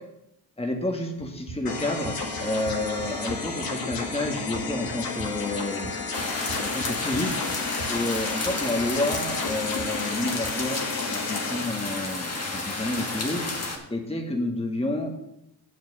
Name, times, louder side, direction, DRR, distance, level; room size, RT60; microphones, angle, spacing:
voice 1, 0.6-5.9 6.6-7.5 7.9-15.2, left 2 dB, 15° left, 2 dB, 1.8 m, -30 dB
Run, 1.2-10.6, right 4 dB, 75° right, 2.3 m, -42 dB
sound 1, 1.6-11.6, left 4 dB, 60° left, 2.0 m, -32 dB
sound 2, 6.1-13.8, left 2 dB, 35° left, 2.4 m, -31 dB
7.3 x 6.4 x 7.6 m, 0.82 s
cardioid pair, 65°, 41 cm